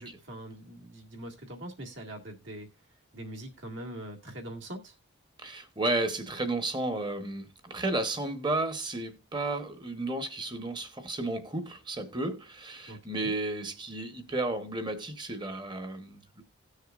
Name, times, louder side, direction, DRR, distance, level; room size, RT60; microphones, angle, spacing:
voice 1, 0.0-2.7 3.1-4.9 12.9-13.3, right 1 dB, 65° right, 2.1 m, -42 dB
voice 2, 5.4-16.4, right 2 dB, 20° right, 1.0 m, -33 dB
17.0 x 6.5 x 2.5 m
head